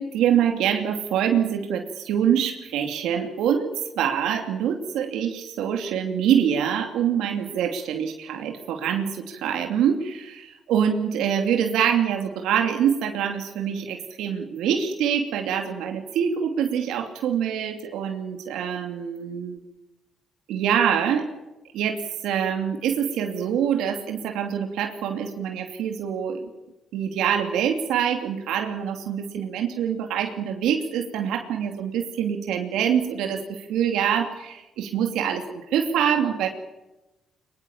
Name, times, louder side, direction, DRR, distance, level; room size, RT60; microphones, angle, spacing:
voice 1, 0.0-19.6 20.5-21.3 21.7-26.5 26.9-36.5, right 8 dB, 90° right, 4 dB, 2.7 m, -25 dB
22.5 x 22.0 x 7.2 m, 1.0 s
cardioid pair, 90°, 0 cm